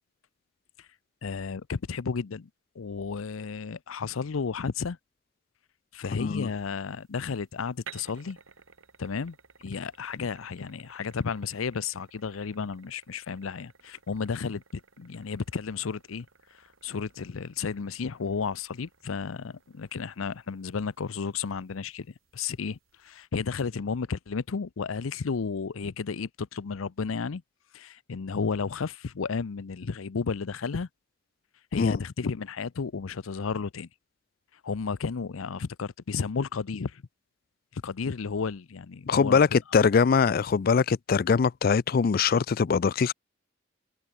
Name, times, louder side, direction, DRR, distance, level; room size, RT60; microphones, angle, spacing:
voice 1, 1.2-2.5 2.8-5.0 5.9-8.4 9.0-9.4 9.6-16.3 16.8-22.1 22.3-27.4 27.7-30.9 31.7-33.9 34.6-37.0 37.7-39.6, left 5 dB, 90° left, 0.6 m, -32 dB
sound 1, 6.3-23.3, right 6 dB, 85° right, 7.6 m, -56 dB
voice 2, 39.1-43.1, left 5 dB, 45° left, 0.4 m, -22 dB
head